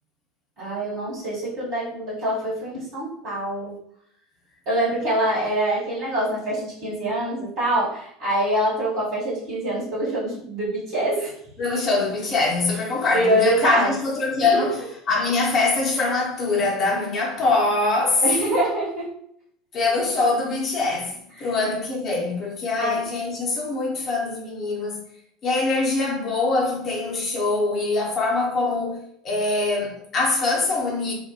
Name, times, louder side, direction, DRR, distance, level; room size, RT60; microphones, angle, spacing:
voice 1, 0.6-3.7 4.6-11.3 13.1-13.9 14.4-14.6 18.2-19.1 21.4-21.5 22.8-23.0, right 1 dB, 55° right, 1.2 m, -25 dB
voice 2, 11.6-14.8 15.1-18.2 19.7-25.0 25.4-31.1, left 3 dB, 35° left, 0.9 m, -23 dB
2.4 x 2.1 x 2.9 m
figure-of-eight pair, 70°, 0 cm